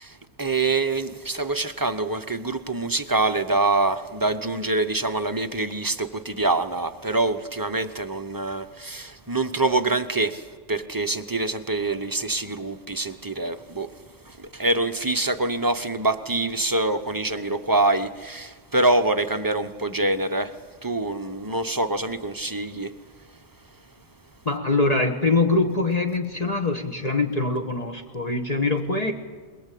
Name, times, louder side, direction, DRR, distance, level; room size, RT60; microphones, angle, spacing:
voice 1, 0.0-13.9 14.3-20.6 20.8-22.9, right 2 dB, 20° right, 0.7 m, -25 dB
voice 2, 24.4-29.1, left 3 dB, 35° left, 1.4 m, -23 dB
21.5 x 21.5 x 8.4 m
omnidirectional pair, 1.2 m